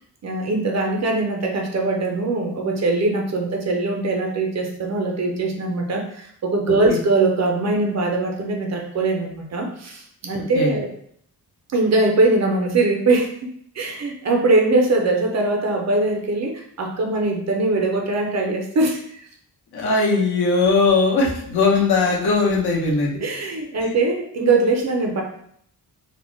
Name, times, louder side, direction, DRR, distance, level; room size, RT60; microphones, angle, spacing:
voice 1, 0.2-10.9 11.7-13.3 13.8-19.2 23.2-25.2, right 2 dB, 45° right, 1 dB, 0.4 m, -21 dB
voice 2, 6.7-7.0 10.5-10.7 19.7-23.2, left 3 dB, 75° left, -3 dB, 0.8 m, -19 dB
2.1 x 2.1 x 3.7 m, 0.67 s
wide cardioid pair, 175°, 39 cm